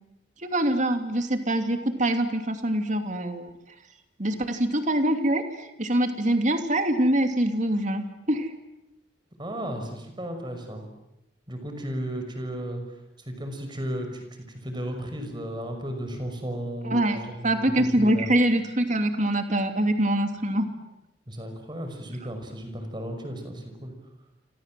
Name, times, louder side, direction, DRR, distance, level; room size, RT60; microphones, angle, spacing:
voice 1, 0.4-3.5 4.2-5.4 5.8-8.0 8.3-8.5 16.8-17.2 17.4-20.6, right 1 dB, 40° right, 6 dB, 2.9 m, -24 dB
voice 2, 9.4-10.9 11.5-12.8 13.2-18.3 21.3-23.9, right 1 dB, 25° right, 5 dB, 5.9 m, -34 dB
28.5 x 26.0 x 7.7 m, 0.87 s
head